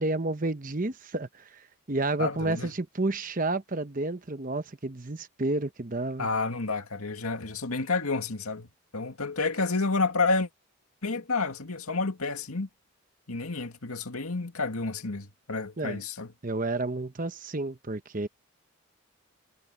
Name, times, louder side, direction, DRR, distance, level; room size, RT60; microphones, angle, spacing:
voice 1, 0.0-1.6 1.9-6.3 15.8-16.0 16.4-18.3, right 2 dB, 40° right, 1.0 m, -30 dB
voice 2, 2.2-2.7 6.2-8.7 8.9-10.5 11.0-12.7 13.3-16.3, left 3 dB, 90° left, 2.2 m, -30 dB
head